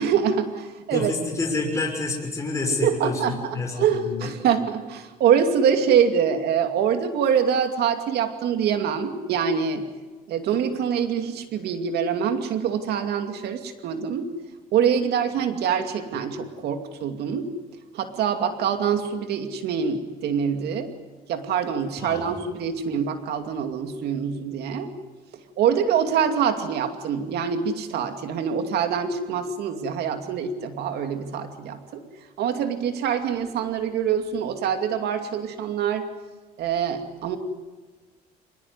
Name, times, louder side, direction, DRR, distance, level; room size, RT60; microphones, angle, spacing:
voice 1, 0.0-1.1 2.7-9.8 10.3-14.3 14.7-17.5 17.9-20.9 21.3-24.9 25.6-32.0 32.4-36.1 36.6-37.4, right 7 dB, 75° right, 7 dB, 2.6 m, -25 dB
voice 2, 0.9-4.3 22.0-22.3, left 3 dB, 20° left, -1 dB, 6.5 m, -28 dB
24.5 x 20.5 x 9.8 m, 1.3 s
cardioid pair, 110°, 17 cm